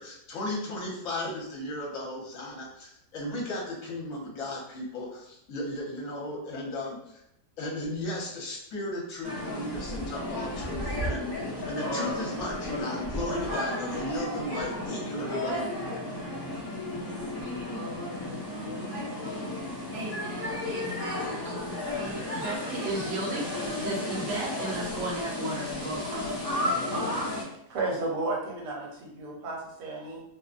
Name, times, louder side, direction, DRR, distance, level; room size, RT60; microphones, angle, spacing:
voice 1, 0.0-7.2 7.6-11.3 11.6-15.6, left 1 dB, 60° left, -3 dB, 1.1 m, -35 dB
sound 1, 9.2-27.4, left 1 dB, 30° left, 0.4 m, -33 dB
voice 2, 19.9-23.4 23.8-26.4, right 2 dB, 55° right, -4 dB, 0.9 m, -35 dB
voice 3, 27.7-30.2, right 2 dB, 80° right, -2 dB, 1.3 m, -33 dB
2.8 x 2.0 x 2.4 m, 0.76 s
omnidirectional pair, 1.7 m